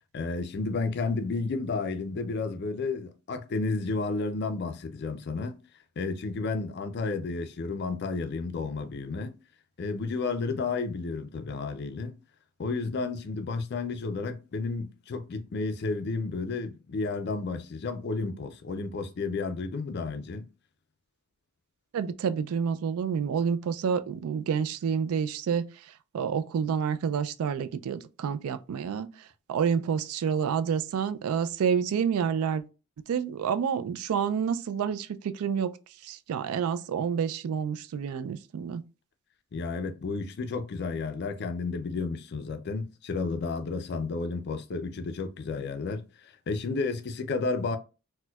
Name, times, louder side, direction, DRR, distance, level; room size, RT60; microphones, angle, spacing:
voice 1, 0.1-5.6 6.0-9.3 9.8-12.2 12.6-20.5 39.5-47.8, left 3 dB, 50° left, 0.4 m, -32 dB
voice 2, 21.9-32.6 33.1-35.8 36.0-38.8, right 7 dB, 75° right, 0.3 m, -29 dB
4.3 x 2.1 x 2.2 m
head